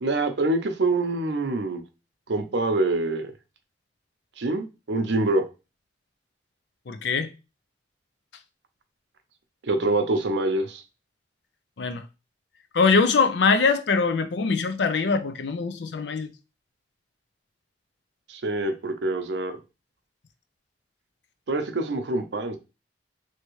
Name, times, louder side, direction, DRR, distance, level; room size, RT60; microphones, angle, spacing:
voice 1, 0.0-1.8 2.3-3.3 4.4-5.4 9.6-10.8 18.3-19.6 21.5-22.6, right 2 dB, 85° right, 0.6 m, -25 dB
voice 2, 6.9-7.3 11.8-12.0 12.7-16.3, left 4 dB, 80° left, 0.5 m, -22 dB
3.4 x 2.8 x 3.1 m
head